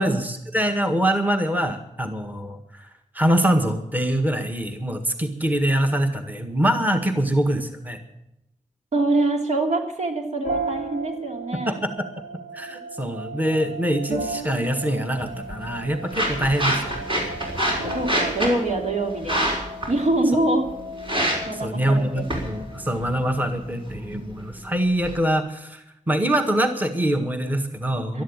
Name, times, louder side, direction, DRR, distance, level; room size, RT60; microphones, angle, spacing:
voice 1, 0.0-2.9 3.1-8.0 11.7-12.1 12.5-16.8 21.5-28.2, right 1 dB, 15° right, 6 dB, 1.8 m, -24 dB
voice 2, 8.9-11.8 17.9-19.4 19.9-20.7 21.4-22.2 28.1-28.2, right 2 dB, 65° right, 2 dB, 3.0 m, -24 dB
sound 1, 10.4-23.7, right 2 dB, 90° right, 2.6 m, -35 dB
sound 2, 15.2-25.1, equal, 45° right, 5.8 m, -29 dB
12.5 x 12.0 x 8.9 m, 0.84 s
cardioid pair, 60°, 13 cm